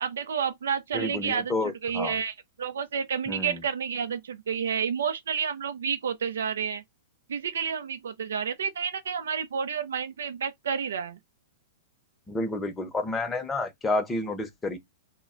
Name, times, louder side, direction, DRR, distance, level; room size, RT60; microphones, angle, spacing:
voice 1, 0.0-1.5 1.8-6.8 7.3-11.2, right 7 dB, 85° right, 0.4 m, -30 dB
voice 2, 0.9-2.2 3.3-3.6 12.3-14.8, left 2 dB, 15° left, 0.7 m, -30 dB
2.2 x 2.1 x 3.6 m
hypercardioid pair, 130°, 0 cm